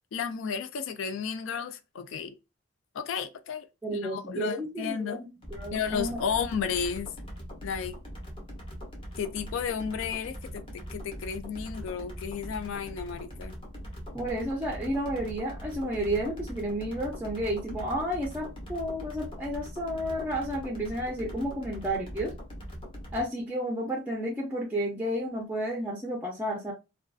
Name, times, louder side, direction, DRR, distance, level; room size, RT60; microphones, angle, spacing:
voice 1, 0.1-2.4 2.9-5.2 5.7-7.1 7.6-8.0 9.2-10.6 10.9-13.6, left 6 dB, 65° left, 0.3 m, -33 dB
voice 2, 3.8-6.2 14.1-22.3 23.1-26.7, equal, 10° right, 0.4 m, -32 dB
sound 1, 5.4-23.2, equal, 25° left, 0.8 m, -41 dB
2.4 x 2.3 x 2.3 m
head